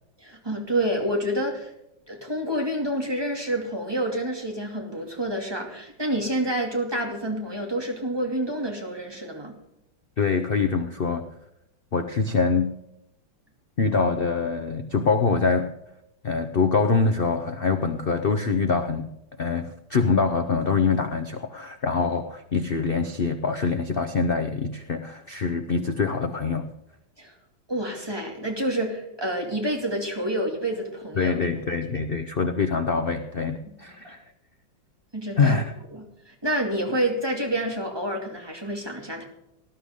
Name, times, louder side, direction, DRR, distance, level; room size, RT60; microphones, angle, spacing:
voice 1, 0.2-1.7 2.1-9.5 27.2-27.3 27.7-31.5 33.8-34.1 35.1-35.6 35.9-39.2, right 1 dB, 10° right, 1 dB, 2.6 m, -28 dB
voice 2, 10.2-11.3 11.9-12.7 13.8-15.7 16.2-19.1 19.4-26.7 31.2-34.2 35.4-35.7, left 4 dB, 90° left, 7 dB, 0.5 m, -24 dB
19.5 x 11.5 x 3.8 m, 0.81 s
omnidirectional pair, 2.2 m